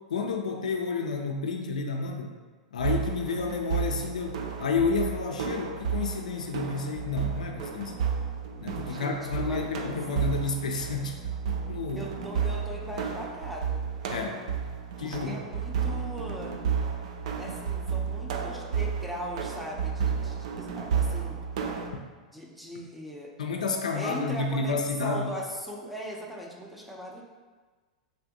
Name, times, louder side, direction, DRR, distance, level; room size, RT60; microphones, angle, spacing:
voice 1, 0.0-2.3 2.7-7.9 8.6-11.2 11.5-12.1 14.1-14.4 15.0-15.4 21.9-22.0 23.4-25.4, left 4 dB, 85° left, 3 dB, 0.3 m, -30 dB
sound 1, 2.8-21.9, right 7 dB, 65° right, 0.3 m, -32 dB
voice 2, 8.9-9.9 11.9-13.8 15.0-16.5 17.4-21.4 22.3-23.3 23.9-27.2, equal, ahead, -2 dB, 0.5 m, -39 dB
3.4 x 2.4 x 2.6 m, 1.3 s
hypercardioid pair, 110°, 4 cm